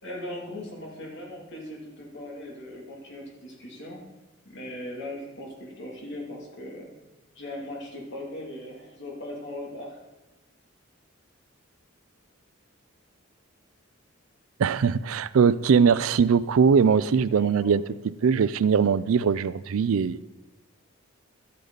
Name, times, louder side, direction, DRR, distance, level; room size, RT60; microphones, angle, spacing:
voice 1, 0.0-4.1 4.4-6.9 7.3-10.0 17.0-17.8, left 1 dB, 60° left, -1 dB, 2.6 m, -39 dB
voice 2, 14.6-17.8 18.2-20.2, right 6 dB, 85° right, 17 dB, 0.4 m, -21 dB
12.5 x 8.4 x 4.0 m, 1.0 s
head